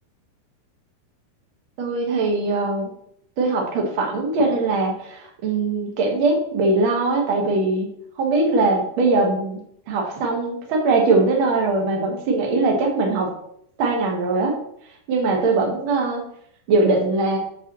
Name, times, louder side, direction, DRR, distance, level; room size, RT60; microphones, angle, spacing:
voice 1, 1.8-2.9 3.4-7.9 8.2-9.6 9.9-13.3 13.8-14.5 15.1-16.2 16.7-17.4, right 3 dB, 90° right, 1 dB, 1.1 m, -21 dB
7.8 x 3.0 x 5.9 m, 0.69 s
omnidirectional pair, 4.5 m